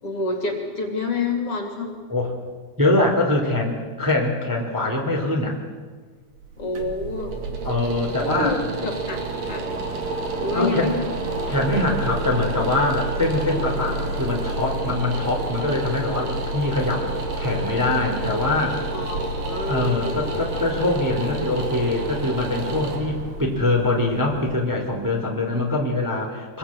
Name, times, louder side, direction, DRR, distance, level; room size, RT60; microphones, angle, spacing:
voice 1, 0.0-2.0 6.6-7.3 8.2-9.6 10.4-11.1 18.9-20.2 25.5-25.6, left 3 dB, 45° left, 3 dB, 3.5 m, -28 dB
voice 2, 2.8-5.6 7.6-8.6 10.5-10.9 11.5-18.8 19.7-26.6, left 2 dB, 5° right, 0 dB, 3.0 m, -23 dB
sound 1, 6.4-25.3, right 2 dB, 75° right, 4.2 m, -29 dB
25.5 x 21.0 x 8.8 m, 1.5 s
omnidirectional pair, 3.8 m